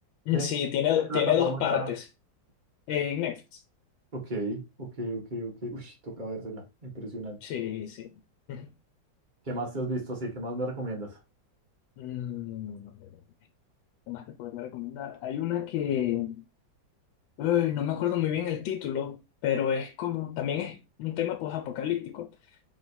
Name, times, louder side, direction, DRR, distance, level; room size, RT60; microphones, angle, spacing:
voice 1, 0.3-2.1 2.9-3.6 7.4-8.1 8.5-8.7 12.0-13.1 14.1-16.4 17.4-22.3, left 10 dB, 90° left, 1.3 m, -30 dB
voice 2, 1.0-1.9 4.1-7.4 9.5-11.2, right 1 dB, 30° right, 1.1 m, -34 dB
3.4 x 3.2 x 4.1 m
omnidirectional pair, 2.0 m